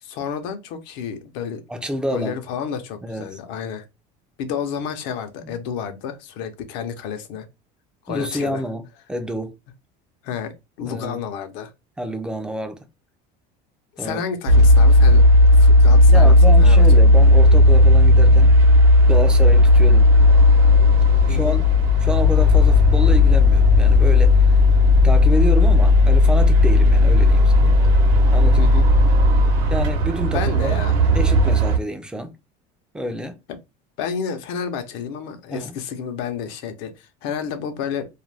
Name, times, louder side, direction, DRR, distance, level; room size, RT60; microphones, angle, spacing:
voice 1, 0.0-1.6 2.1-3.9 4.4-7.5 8.0-8.6 10.2-10.5 10.8-11.7 13.9-15.2 15.5-17.0 21.3-21.6 28.6-28.9 30.3-31.0 33.5-33.6 34.0-38.1, left 7 dB, 70° left, 0.7 m, -30 dB
voice 2, 1.7-2.4 3.0-3.4 5.4-5.5 8.1-9.5 10.8-11.2 12.0-12.9 14.0-14.2 16.1-18.5 19.1-20.1 21.2-21.6 22.0-24.6 25.0-27.8 28.3-28.9 29.7-30.8 31.1-32.3 32.9-33.4 35.5-35.7, equal, 5° right, 0.4 m, -28 dB
sound 1, 14.5-31.8, left 2 dB, 85° right, 0.8 m, -13 dB
2.4 x 2.2 x 3.2 m
cardioid pair, 140°, 20 cm